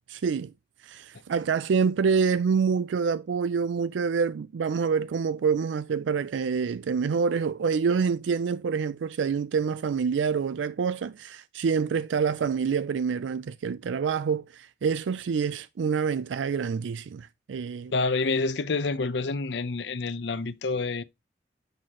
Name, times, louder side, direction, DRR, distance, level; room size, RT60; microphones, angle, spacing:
voice 1, 0.1-0.5 0.8-17.9, right 6 dB, 85° right, 0.4 m, -27 dB
voice 2, 17.9-21.0, left 3 dB, 70° left, 0.6 m, -28 dB
8.7 x 6.3 x 2.9 m
head